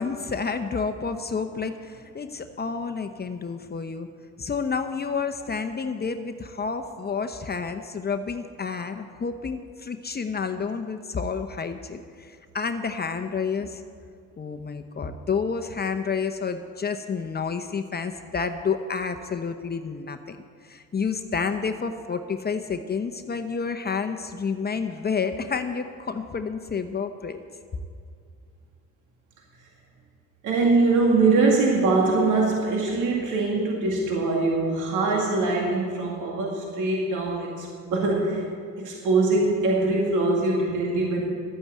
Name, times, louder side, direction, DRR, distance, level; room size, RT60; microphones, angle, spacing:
voice 1, 0.0-4.1 4.4-13.8 14.4-27.4, left 5 dB, 35° left, 8 dB, 0.8 m, -30 dB
voice 2, 30.4-38.4 38.8-41.2, right 3 dB, 85° right, -1 dB, 2.2 m, -23 dB
12.5 x 9.2 x 8.3 m, 2.3 s
cardioid pair, 90°, 30 cm